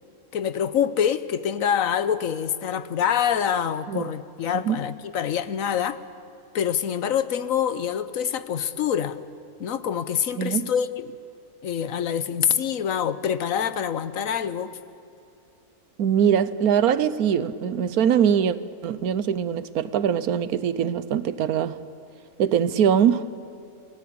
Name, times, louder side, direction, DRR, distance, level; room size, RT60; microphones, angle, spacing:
voice 1, 0.3-6.0 6.5-9.2 9.6-11.1 11.6-14.8, left 8 dB, 65° left, 1.2 m, -25 dB
voice 2, 10.4-10.7 16.0-18.6 18.8-21.8 22.4-23.3, right 8 dB, 75° right, 1.3 m, -22 dB
29.5 x 18.5 x 8.6 m
omnidirectional pair, 1.6 m